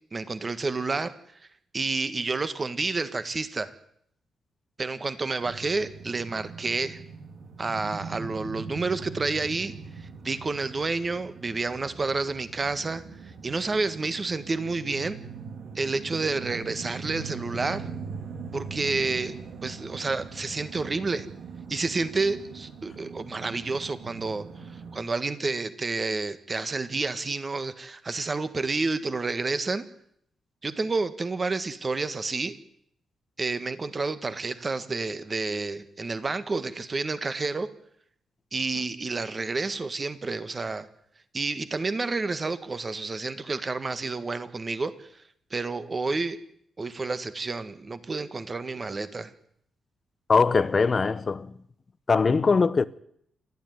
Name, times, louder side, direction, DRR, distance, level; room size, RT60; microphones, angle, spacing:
voice 1, 0.1-1.1 1.4-1.5 1.7-3.7 4.8-7.0 7.6-15.2 15.7-17.9 18.5-21.3 21.7-29.8 30.6-32.6 33.4-37.7 38.5-40.9 41.3-45.2 45.5-46.4 46.8-49.3, right 3 dB, 25° right, 1.6 m, -30 dB
sound 1, 5.4-25.0, right 5 dB, 60° right, 3.2 m, -41 dB
voice 2, 50.3-51.6 52.1-52.8, left 4 dB, 30° left, 0.9 m, -21 dB
29.0 x 12.5 x 9.5 m
wide cardioid pair, 145°, 0 cm